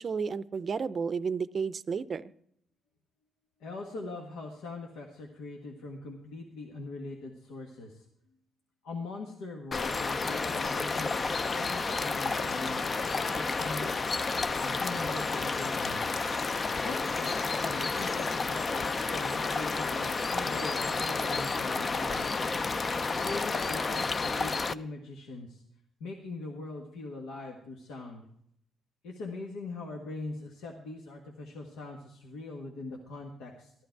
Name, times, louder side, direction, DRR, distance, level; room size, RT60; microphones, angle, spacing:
voice 1, 0.0-2.3, right 5 dB, 45° right, 16 dB, 0.5 m, -32 dB
voice 2, 3.6-8.0 8.8-12.9 13.3-14.1 14.6-16.1 16.8-22.3 23.2-25.6 26.0-28.2 29.0-33.7, left 2 dB, 90° left, 0 dB, 1.5 m, -41 dB
sound 1, 9.7-24.7, left 4 dB, 35° left, 0.5 m, -31 dB
13.5 x 11.5 x 4.6 m, 0.70 s
cardioid pair, 90°, 0 cm